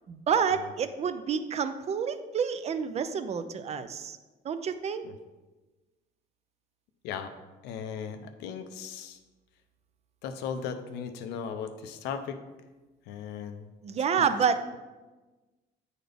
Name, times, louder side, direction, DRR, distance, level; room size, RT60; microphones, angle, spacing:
voice 1, 0.1-4.2 4.4-5.0 13.8-14.6, right 6 dB, 40° right, 11 dB, 0.5 m, -28 dB
voice 2, 7.6-9.2 10.2-12.4 13.1-13.6 14.2-14.3, left 7 dB, 90° left, 8 dB, 0.6 m, -37 dB
9.1 x 4.0 x 3.4 m, 1.2 s
cardioid pair, 110°, 17 cm